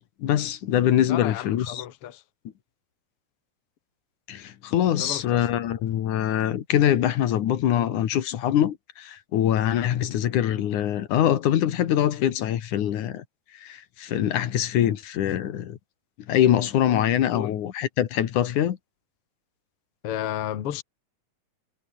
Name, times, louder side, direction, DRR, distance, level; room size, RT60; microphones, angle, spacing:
voice 1, 0.2-1.7 4.3-13.2 13.5-15.8 16.3-18.8, left 11 dB, 80° left, 3.0 m, -23 dB
voice 2, 1.1-2.2 5.0-5.5 17.3-17.6 20.0-20.8, left 11 dB, 55° left, 2.2 m, -32 dB
omnidirectional pair, 3.4 m